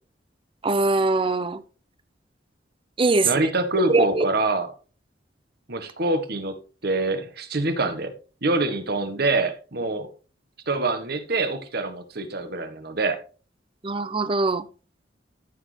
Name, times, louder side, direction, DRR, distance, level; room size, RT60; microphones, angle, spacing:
voice 1, 0.6-1.6 3.0-3.5 3.9-4.2 13.8-14.6, right 3 dB, 30° right, 0.6 m, -22 dB
voice 2, 3.2-4.7 5.7-6.6 6.8-8.1 8.4-10.1 10.7-13.2, right 2 dB, 60° right, 1.4 m, -25 dB
13.5 x 6.4 x 3.3 m
head